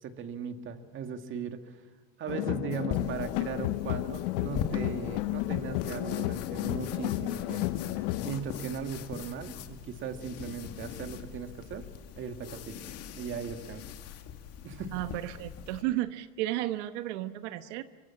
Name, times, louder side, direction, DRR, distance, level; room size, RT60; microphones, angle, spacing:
voice 1, 0.0-1.8 2.2-11.9 12.2-12.8 13.2-13.8 14.6-15.0, right 6 dB, 35° right, 7 dB, 2.1 m, -38 dB
sound 1, 2.3-8.3, left 18 dB, 85° left, 0.8 m, -32 dB
sound 2, 2.9-15.8, left 8 dB, 45° left, 2.2 m, -42 dB
voice 2, 14.9-17.8, right 15 dB, 90° right, 10 dB, 1.2 m, -33 dB
26.5 x 24.5 x 7.3 m, 1.3 s
cardioid pair, 155°, 34 cm